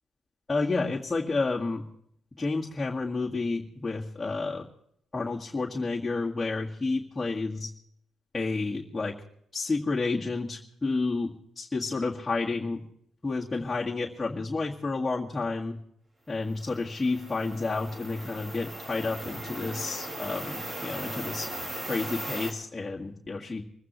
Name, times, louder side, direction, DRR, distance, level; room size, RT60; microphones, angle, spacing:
voice 1, 0.5-1.9 2.4-4.7 5.1-7.7 8.3-9.2 9.5-12.8 13.2-15.8 16.3-21.5 21.9-23.6, left 3 dB, 20° left, -4 dB, 2.0 m, -30 dB
sound 1, 16.6-22.5, right 1 dB, 35° right, 4.4 m, -38 dB
25.5 x 15.0 x 3.2 m, 0.67 s
cardioid pair, 90°, 0 cm